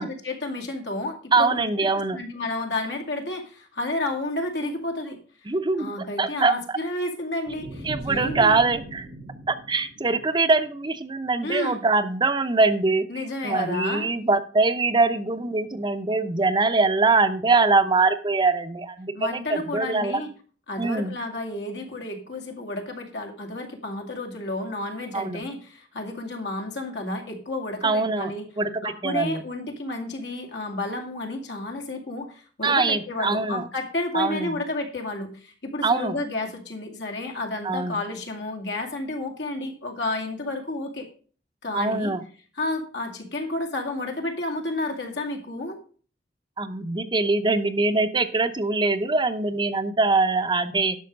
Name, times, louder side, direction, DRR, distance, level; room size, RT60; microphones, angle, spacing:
voice 1, 0.0-1.7 2.1-5.2 5.7-8.6 11.4-11.9 13.1-14.1 19.1-20.3 20.7-28.5 28.8-41.1 41.6-42.1 42.6-45.8, left 2 dB, 75° left, 3 dB, 2.4 m, -31 dB
voice 2, 1.3-2.2 5.5-5.9 6.2-6.8 7.8-9.1 9.5-20.2 20.8-21.2 25.1-25.4 27.8-29.4 32.6-33.6 34.1-34.6 35.8-36.2 37.6-38.0 41.7-42.2 46.6-51.0, right 3 dB, 25° right, 9 dB, 0.7 m, -23 dB
sound 1, 7.5-10.7, right 1 dB, 90° right, 1.8 m, -38 dB
11.0 x 6.2 x 5.3 m, 0.41 s
head